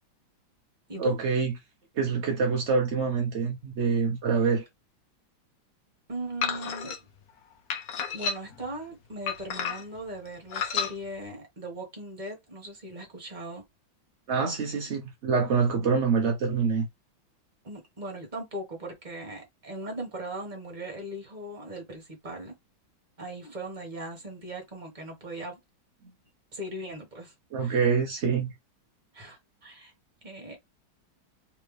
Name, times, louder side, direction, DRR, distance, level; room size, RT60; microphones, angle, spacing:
voice 1, 1.0-1.5 2.0-4.6 14.3-16.9 27.5-28.5, right 5 dB, 60° right, 0.7 m, -26 dB
voice 2, 6.1-6.9 8.1-13.6 17.6-22.5 23.2-25.6 26.5-27.8 29.1-29.9 30.2-30.6, right 1 dB, 25° right, 1.4 m, -39 dB
sound 1, 6.4-7.0 7.7-8.6 9.3-10.0 10.5-10.9, left 6 dB, 60° left, 1.2 m, -31 dB
3.5 x 3.4 x 3.2 m
omnidirectional pair, 2.2 m